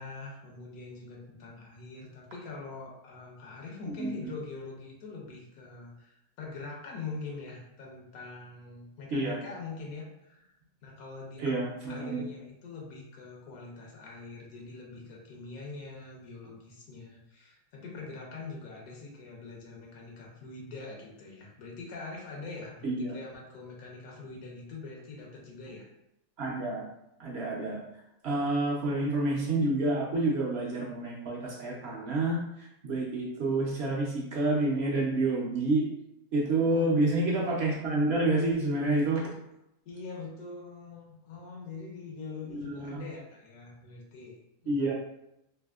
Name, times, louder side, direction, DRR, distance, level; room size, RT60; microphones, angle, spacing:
voice 1, 0.0-10.5 10.8-25.9 36.7-37.2 39.8-44.4 44.6-44.9, left 3 dB, 85° left, -1 dB, 1.2 m, -43 dB
voice 2, 11.4-12.2 22.8-23.2 26.4-26.8 27.2-27.8 28.2-32.4 32.8-35.9 36.3-39.2 42.5-43.0 44.7-44.9, right 2 dB, 60° right, -3 dB, 0.7 m, -28 dB
3.4 x 2.6 x 2.3 m, 0.85 s
omnidirectional pair, 1.5 m